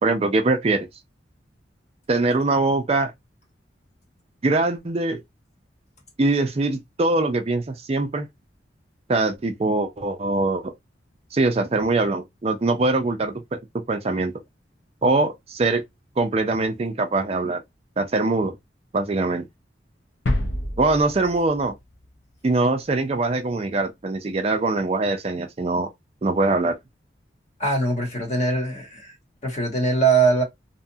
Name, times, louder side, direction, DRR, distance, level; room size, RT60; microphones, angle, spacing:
voice 1, 0.0-0.9 2.1-3.1 4.4-5.2 6.2-8.3 9.1-10.7 11.3-13.6 13.9-14.3 15.0-15.8 16.2-17.6 18.0-18.5 18.9-19.4 20.8-21.7 22.4-25.9 26.2-26.8, right 2 dB, 35° right, 0.4 m, -22 dB
sound 1, 20.3-22.1 22.4-22.5, left 1 dB, 75° left, 0.7 m, -28 dB
voice 2, 27.6-29.1 29.4-30.4, right 3 dB, 40° left, 1.1 m, -21 dB
2.8 x 2.2 x 2.6 m
head